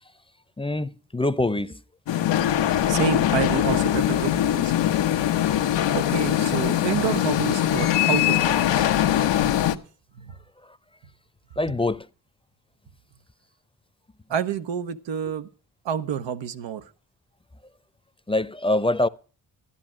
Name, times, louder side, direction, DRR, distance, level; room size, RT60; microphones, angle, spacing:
voice 1, 0.6-1.8 11.6-12.1 18.3-19.1, left 2 dB, 15° left, 0.7 m, -24 dB
sound 1, 2.1-9.8, left 11 dB, 85° left, 0.8 m, -22 dB
voice 2, 2.8-4.7 5.9-8.9 10.2-10.3 14.3-15.5 15.8-16.8, right 8 dB, 90° right, 0.9 m, -28 dB
12.5 x 11.0 x 6.1 m
supercardioid pair, 50°, 43 cm